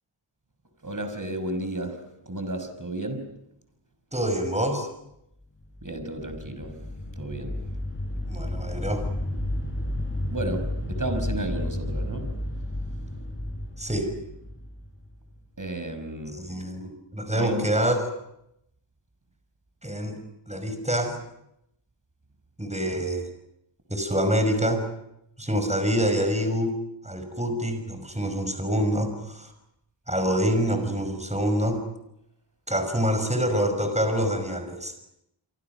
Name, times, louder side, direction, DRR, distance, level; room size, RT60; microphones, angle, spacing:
voice 1, 0.8-2.0 2.3-3.3 5.8-6.7 7.2-7.6 10.3-12.3 15.6-16.4 17.3-17.7, right 1 dB, 40° right, 7 dB, 5.9 m, -32 dB
voice 2, 4.1-4.9 8.3-9.1 13.8-14.1 16.3-18.0 19.8-20.2 20.5-21.2 22.6-23.3 23.9-24.8 25.4-26.8 27.0-29.5 30.1-31.8 32.7-34.9, equal, 15° right, 7 dB, 5.7 m, -26 dB
sound 1, 5.6-15.4, left 1 dB, 25° left, 7.1 m, -32 dB
28.0 x 25.5 x 6.1 m, 0.81 s
wide cardioid pair, 50°, 49 cm